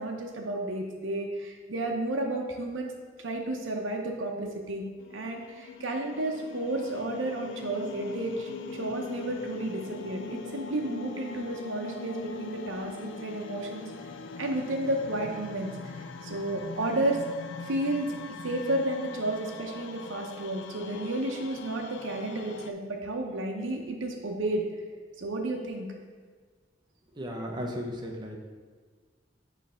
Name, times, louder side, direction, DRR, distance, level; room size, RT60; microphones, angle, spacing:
voice 1, 0.0-2.9 3.2-4.8 5.1-13.9 14.4-17.2 17.6-18.1 18.4-24.7 25.2-25.9, right 1 dB, 85° right, 1 dB, 0.7 m, -32 dB
sound 1, 5.0-22.7, left 4 dB, 70° left, 0.4 m, -41 dB
voice 2, 27.1-28.4, equal, 25° right, 0 dB, 0.7 m, -35 dB
6.3 x 3.3 x 5.5 m, 1.5 s
head